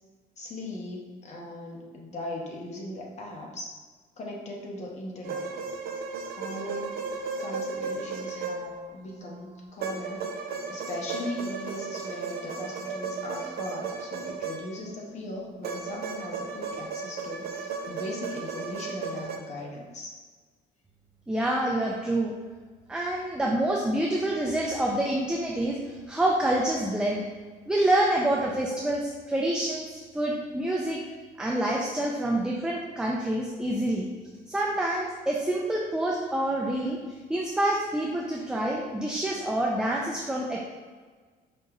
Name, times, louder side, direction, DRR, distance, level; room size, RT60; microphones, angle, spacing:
voice 1, 0.4-3.7 4.2-5.4 6.4-7.0 7.4-10.3 10.7-20.1, left 1 dB, 40° left, -1 dB, 0.9 m, -38 dB
sound 1, 5.2-9.1 9.8-15.0 15.6-19.4, right 4 dB, 65° right, 0.5 m, -35 dB
voice 2, 21.3-22.3 22.9-27.2 27.7-31.0 31.4-34.1 34.5-37.0 37.3-40.6, right 1 dB, 5° right, -2 dB, 0.4 m, -27 dB
5.1 x 2.9 x 2.4 m, 1.4 s
cardioid pair, 110°, 17 cm